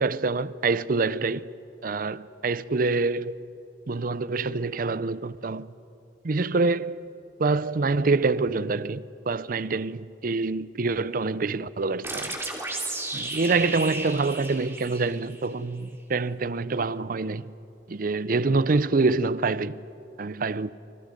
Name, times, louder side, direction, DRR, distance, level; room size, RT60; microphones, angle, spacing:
voice 1, 0.0-1.5 1.8-3.3 3.9-5.7 6.2-7.0 7.4-12.3 13.1-17.5 17.9-19.8 20.2-20.7, right 3 dB, 50° right, 0.6 m, -26 dB
sound 1, 12.0-15.5, right 2 dB, 15° right, 3.3 m, -34 dB
29.5 x 26.0 x 5.3 m
head